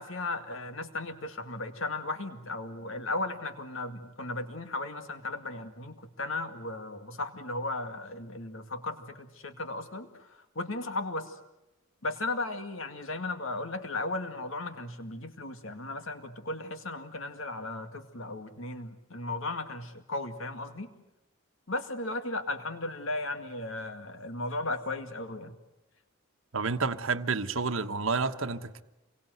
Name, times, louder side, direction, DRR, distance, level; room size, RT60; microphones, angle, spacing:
voice 1, 0.0-10.3 10.6-11.3 12.0-20.9 21.7-25.5, left 2 dB, 65° left, 8 dB, 2.2 m, -36 dB
voice 2, 26.5-28.8, right 4 dB, 65° right, 9 dB, 1.2 m, -30 dB
28.0 x 23.0 x 7.9 m, 0.94 s
head